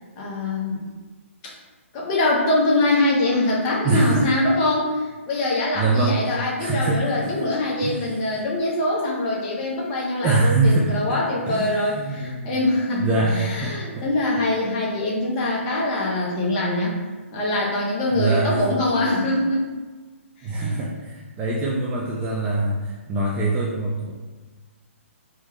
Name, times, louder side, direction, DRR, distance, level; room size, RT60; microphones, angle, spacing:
voice 1, 0.1-0.9 1.4-1.5 1.9-16.9 17.3-19.7 20.4-20.8, left 2 dB, 30° left, -4 dB, 0.8 m, -23 dB
voice 2, 3.8-4.2 5.7-6.3 6.6-7.4 7.8-8.0 8.3-8.4 10.2-11.2 11.5-12.5 13.0-14.1 18.1-18.6 20.4-24.1, right 3 dB, 15° right, -4 dB, 0.3 m, -23 dB
3.2 x 2.2 x 3.0 m, 1.3 s
figure-of-eight pair, 130°, 7 cm